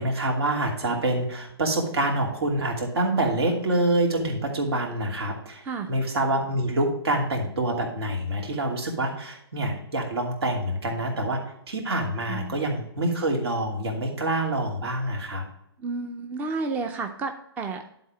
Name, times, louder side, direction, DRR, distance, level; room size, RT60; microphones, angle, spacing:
voice 1, 0.0-5.6 5.9-15.4, right 1 dB, 75° right, 0 dB, 2.7 m, -26 dB
voice 2, 15.8-17.9, right 4 dB, 15° right, 5 dB, 0.5 m, -31 dB
10.5 x 4.1 x 5.1 m, 0.76 s
hypercardioid pair, 140°, 14 cm